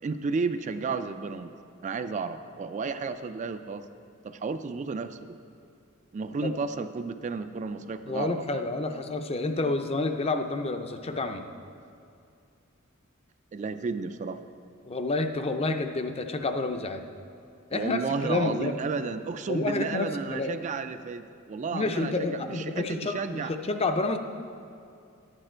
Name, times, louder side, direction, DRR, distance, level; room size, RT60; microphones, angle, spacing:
voice 1, 0.0-1.5 1.8-3.9 4.2-5.4 6.1-8.6 13.5-14.4 17.7-23.5, right 4 dB, 35° right, 10 dB, 0.3 m, -32 dB
voice 2, 8.1-11.4 14.9-17.0 17.7-18.7 19.5-20.5 21.7-24.2, left 3 dB, 30° left, 7 dB, 0.5 m, -29 dB
10.5 x 8.9 x 4.4 m, 2.5 s
head